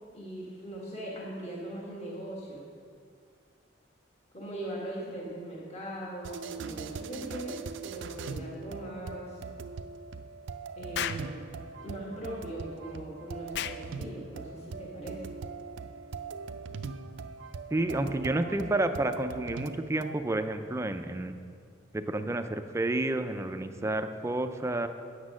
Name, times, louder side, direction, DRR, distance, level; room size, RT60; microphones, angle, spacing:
voice 1, 0.1-2.7 4.3-9.4 10.8-11.5 11.8-15.2, right 1 dB, 35° left, -4 dB, 1.5 m, -40 dB
sound 1, 6.2-20.2, right 4 dB, 75° right, 0.5 m, -41 dB
Explosion, 10.9-11.3 13.5-13.8, left 9 dB, 60° left, 0.4 m, -33 dB
voice 2, 17.7-21.4 21.9-24.9, right 2 dB, 15° right, 8 dB, 0.4 m, -30 dB
8.4 x 8.0 x 6.3 m, 2.2 s
head